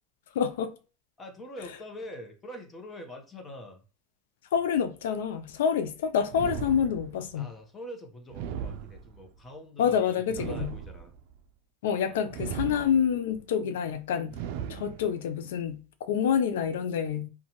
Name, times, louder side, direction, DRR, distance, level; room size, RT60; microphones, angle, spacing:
voice 1, 0.3-0.7 4.5-7.5 9.8-10.8 11.8-14.4 14.7-17.3, left 8 dB, 85° left, 0.4 m, -27 dB
voice 2, 1.2-3.8 7.3-11.1 12.0-12.4, left 1 dB, 20° left, 0.8 m, -44 dB
sound 1, 6.3-7.4 8.3-9.4 10.3-11.4 12.3-13.3 14.3-15.3, right 8 dB, 70° right, 0.4 m, -37 dB
2.7 x 2.3 x 2.9 m
supercardioid pair, 120°, 0 cm